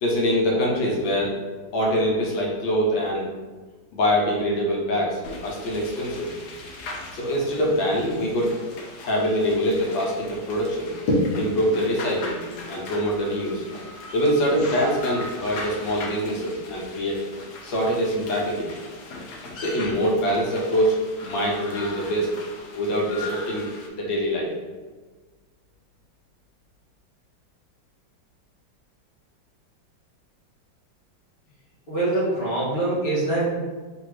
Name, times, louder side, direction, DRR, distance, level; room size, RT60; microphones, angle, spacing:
voice 1, 0.0-1.3 1.7-3.3 3.9-6.3 7.1-8.5 9.0-12.4 12.7-13.6 14.1-17.2 17.6-18.7 19.6-22.3 22.7-23.6 24.0-24.5, equal, 85° left, -3 dB, 1.7 m, -24 dB
sound 1, 5.2-23.9, left 2 dB, 65° left, 1.3 m, -39 dB
voice 2, 31.9-33.5, right 2 dB, 20° left, -7 dB, 1.1 m, -24 dB
3.7 x 2.6 x 4.7 m, 1.3 s
omnidirectional pair, 2.0 m